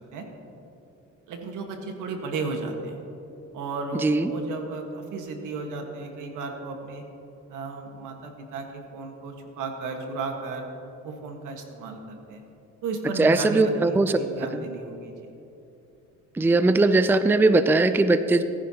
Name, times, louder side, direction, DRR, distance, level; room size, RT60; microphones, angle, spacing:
voice 1, 1.3-3.0 3.5-7.0 7.5-10.7 11.0-12.4 12.8-15.3, right 3 dB, 85° right, 3 dB, 1.5 m, -34 dB
voice 2, 13.2-14.1 14.5-14.6 16.4-18.4, right 2 dB, 5° right, 11 dB, 0.4 m, -20 dB
18.5 x 10.5 x 2.9 m, 2.9 s
cardioid pair, 90°, 30 cm